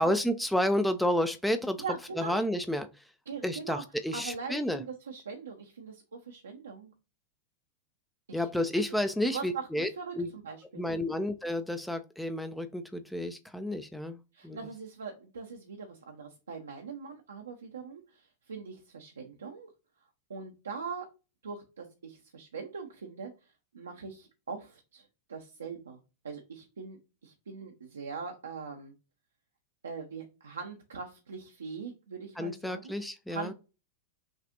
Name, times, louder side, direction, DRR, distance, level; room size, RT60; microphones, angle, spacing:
voice 1, 0.0-1.8 2.2-3.0 3.4-4.8 8.3-9.9 10.1-10.3 10.8-14.2 14.4-14.6 32.4-33.5, left 1 dB, 5° left, 9 dB, 0.4 m, -30 dB
voice 2, 1.8-2.4 3.3-3.8 4.1-6.9 8.3-8.8 9.3-10.9 14.3-19.7 20.3-21.1 21.4-23.3 23.7-26.0 26.2-28.9 29.8-33.0 33.3-33.5, right 5 dB, 70° right, 2 dB, 0.6 m, -41 dB
6.0 x 2.4 x 2.6 m, 0.30 s
figure-of-eight pair, 90°, 0 cm